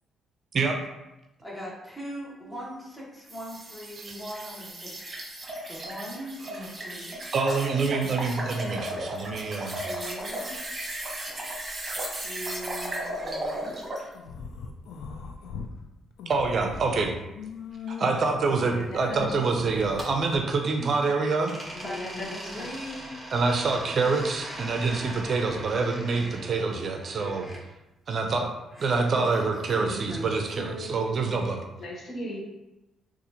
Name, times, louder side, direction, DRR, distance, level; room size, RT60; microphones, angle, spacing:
voice 1, 1.4-4.9 5.7-7.3 9.8-10.6 12.2-13.7 21.8-23.2 29.1-31.4, equal, 15° left, -5 dB, 1.3 m, -40 dB
Bubble Airy Sequence, 3.3-14.1, right 1 dB, 30° right, 1.1 m, -35 dB
voice 2, 7.3-9.8 16.3-17.1 17.9-21.5 23.3-27.5 28.1-28.5 28.8-31.6, right 4 dB, 50° right, 3 dB, 0.4 m, -26 dB
sound 1, 14.1-15.7 16.1-20.4, left 5 dB, 80° left, 0.3 m, -40 dB
voice 3, 18.7-19.3 19.6-19.7 20.7-21.1 21.7-22.7 31.8-32.4, left 1 dB, 50° left, -2 dB, 0.9 m, -38 dB
sound 2, 19.7-21.1 21.5-27.6 28.7-29.8, right 1 dB, 10° right, 0.9 m, -41 dB
4.0 x 2.4 x 2.8 m, 0.98 s
cardioid pair, 90°, 0 cm